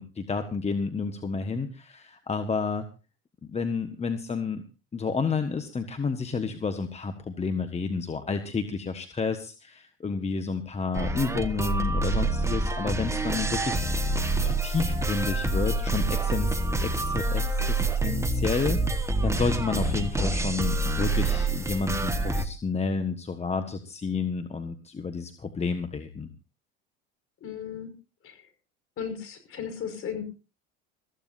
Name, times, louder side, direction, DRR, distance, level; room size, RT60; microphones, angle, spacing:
voice 1, 0.0-2.8 3.4-4.6 4.9-13.8 14.4-26.3, left 4 dB, 20° left, 8 dB, 1.5 m, -30 dB
sound 1, 10.9-22.5, right 2 dB, 10° right, 1.5 m, -27 dB
voice 2, 27.4-27.9 28.2-28.5 29.0-30.2, left 7 dB, 45° left, 8 dB, 5.6 m, -35 dB
22.0 x 14.5 x 2.7 m, 0.32 s
supercardioid pair, 95°, 30 cm